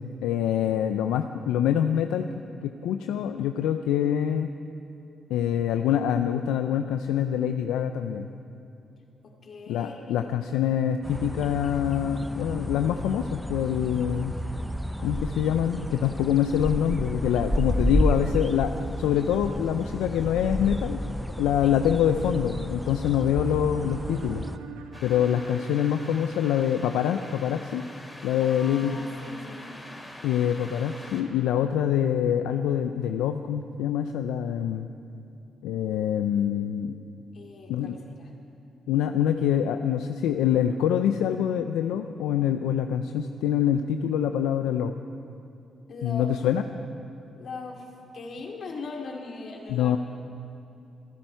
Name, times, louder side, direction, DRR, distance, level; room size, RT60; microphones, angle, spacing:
voice 1, 0.0-2.2 2.6-4.5 5.3-8.3 9.7-14.3 15.0-18.7 19.0-21.0 21.4-24.4 25.0-27.8 28.2-29.0 30.2-34.9 35.6-37.0 37.7-38.0 38.9-44.9 46.0-46.6 49.7-50.0, left 9 dB, 85° left, 7 dB, 0.5 m, -25 dB
voice 2, 9.2-10.4 21.6-21.8 28.4-29.7 37.3-38.3 45.9-46.4 47.3-50.0, left 3 dB, 65° left, 1 dB, 2.5 m, -40 dB
sound 1, 11.0-24.6, equal, ahead, 0.9 m, -31 dB
sound 2, 23.8-27.7, right 6 dB, 90° right, 1.0 m, -46 dB
sound 3, 24.9-31.2, left 1 dB, 20° left, 3.6 m, -45 dB
26.5 x 10.5 x 4.6 m, 2.9 s
supercardioid pair, 55°, 0 cm